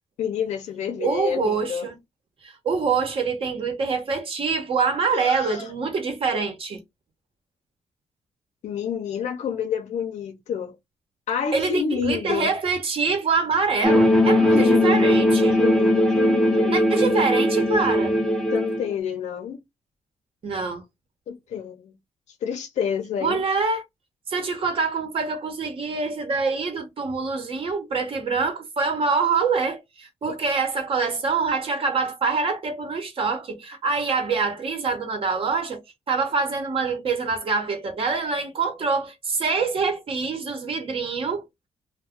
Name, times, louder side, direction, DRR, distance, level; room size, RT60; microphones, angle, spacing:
voice 1, 0.2-1.9 5.1-5.7 8.6-10.8 11.3-12.5 14.5-15.1 15.6-16.8 18.5-19.6 21.3-21.9 22.4-23.4 30.3-30.4, left 7 dB, 80° left, 0.7 m, -28 dB
voice 2, 1.0-2.0 2.4-6.8 11.5-15.6 16.7-18.1 20.4-20.8 23.2-23.8 24.3-35.8 36.1-41.5, right 4 dB, 50° right, 1.0 m, -25 dB
sound 1, 13.8-18.9, left 1 dB, 5° left, 0.6 m, -19 dB
2.3 x 2.3 x 3.5 m
cardioid pair, 110°, 12 cm